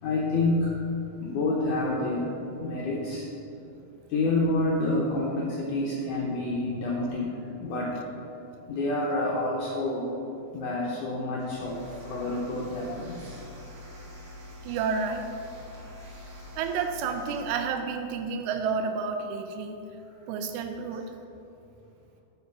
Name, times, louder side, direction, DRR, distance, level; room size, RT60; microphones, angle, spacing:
voice 1, 0.0-0.9 1.2-3.3 4.1-7.9 8.7-10.1 10.5-13.4, left 2 dB, 85° left, -4 dB, 1.8 m, -28 dB
sound 1, 11.4-17.5, left 1 dB, 50° right, 1.6 m, -45 dB
voice 2, 14.6-15.3 16.6-19.8 20.3-21.1, right 5 dB, 85° right, 6 dB, 2.7 m, -30 dB
11.5 x 5.1 x 4.6 m, 2.8 s
omnidirectional pair, 4.9 m